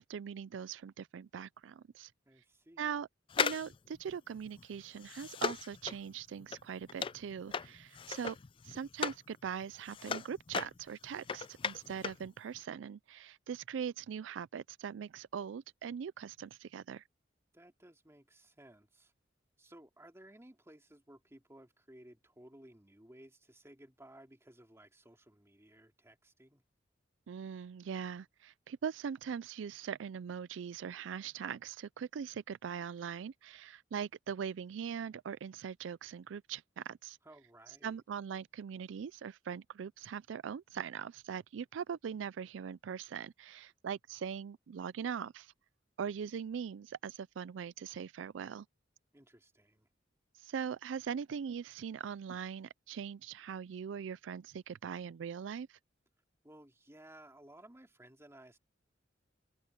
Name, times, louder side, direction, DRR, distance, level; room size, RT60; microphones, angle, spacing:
voice 1, 0.0-2.1 2.8-3.1 3.4-8.4 8.6-17.0 27.3-37.2 37.8-45.5 46.0-48.7 50.4-55.8, right 7 dB, 80° right, 0.4 m, -41 dB
voice 2, 2.3-3.0 17.5-19.1 19.6-26.6 37.2-38.0 49.1-49.9 56.4-58.6, right 1 dB, 15° right, 2.7 m, -58 dB
sound 1, 3.3-9.3 9.6-12.3 12.5-12.6, left 6 dB, 30° left, 0.3 m, -38 dB
head